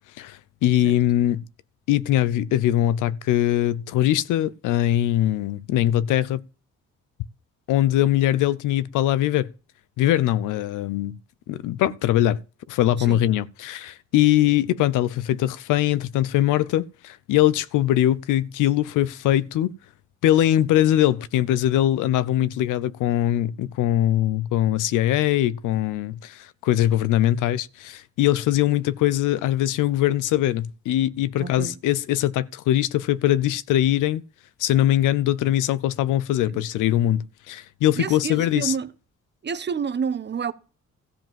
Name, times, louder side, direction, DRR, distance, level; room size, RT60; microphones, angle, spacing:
voice 1, 0.2-1.4 1.9-6.4 7.7-9.5 10.0-11.2 11.5-12.4 12.7-19.7 20.2-34.2 34.6-38.7, left 13 dB, 90° left, 0.7 m, -22 dB
voice 2, 31.4-31.8 36.5-36.6 38.0-38.9 39.4-40.5, right 6 dB, 35° right, 1.0 m, -29 dB
14.0 x 5.0 x 7.6 m
cardioid pair, 90°, 30 cm